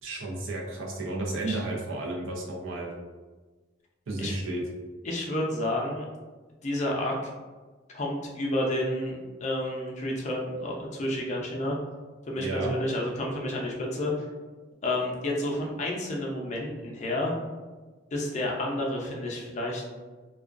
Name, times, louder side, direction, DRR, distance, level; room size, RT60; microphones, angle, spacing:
voice 1, 0.0-2.9 4.1-4.6 12.3-12.8, right 2 dB, 80° right, -2 dB, 0.6 m, -32 dB
voice 2, 5.0-6.0 6.6-7.2 7.9-11.8 12.3-14.1 14.8-17.4 18.1-19.8, left 1 dB, 35° left, -2 dB, 0.4 m, -30 dB
2.3 x 2.2 x 2.4 m, 1.3 s
head